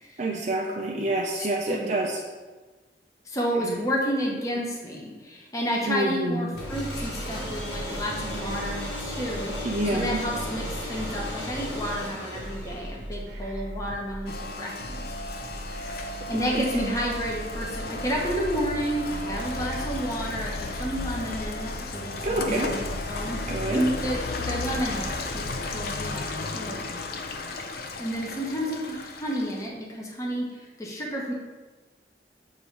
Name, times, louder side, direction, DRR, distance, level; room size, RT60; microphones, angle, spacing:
voice 1, 0.2-2.2 3.6-3.8 5.9-6.5 9.6-10.2 16.5-16.6 22.2-22.7 23.5-23.8, right 2 dB, 40° right, -1 dB, 0.5 m, -27 dB
voice 2, 1.3-1.9 3.3-9.5 9.9-15.0 16.3-23.4 23.7-24.2 24.5-25.4 25.7-26.9 28.0-31.3, equal, 20° left, -3 dB, 0.9 m, -31 dB
sound 1, 6.5-26.1, equal, 80° right, 0.9 m, -39 dB
sound 2, 6.6-13.1, left 1 dB, 75° left, 1.5 m, -35 dB
Rain, 14.3-29.7, left 3 dB, 60° left, 0.5 m, -34 dB
7.7 x 2.7 x 4.6 m, 1.3 s
head